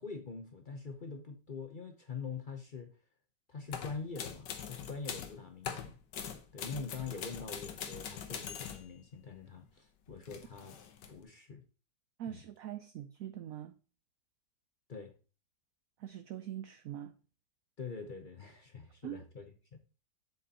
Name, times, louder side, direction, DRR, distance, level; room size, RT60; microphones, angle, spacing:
voice 1, 0.0-2.9 3.5-6.0 6.5-10.8 11.1-11.6 12.3-12.4 14.9-15.1 17.8-19.4 19.7-19.8, left 5 dB, 45° left, 0.6 m, -44 dB
sound 1, 3.7-5.4 5.6-8.9 10.1-11.1, left 7 dB, 80° left, 1.5 m, -43 dB
voice 2, 12.2-13.7 16.0-17.1 19.0-19.2, right 11 dB, 70° right, 0.8 m, -43 dB
7.7 x 7.5 x 2.9 m
omnidirectional pair, 1.9 m